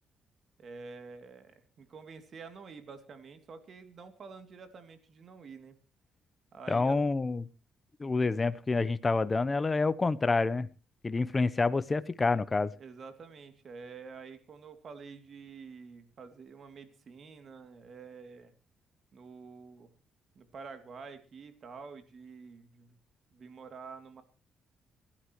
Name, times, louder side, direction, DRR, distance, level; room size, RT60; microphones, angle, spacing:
voice 1, 0.6-5.8 6.5-7.0 12.8-18.5 19.1-19.9 20.3-22.9 23.3-24.2, right 5 dB, 50° right, 9 dB, 2.7 m, -48 dB
voice 2, 6.7-7.5 8.0-10.7 11.0-12.7, left 3 dB, 25° left, 15 dB, 0.8 m, -28 dB
27.0 x 11.5 x 3.1 m, 0.33 s
cardioid pair, 90°, 0 cm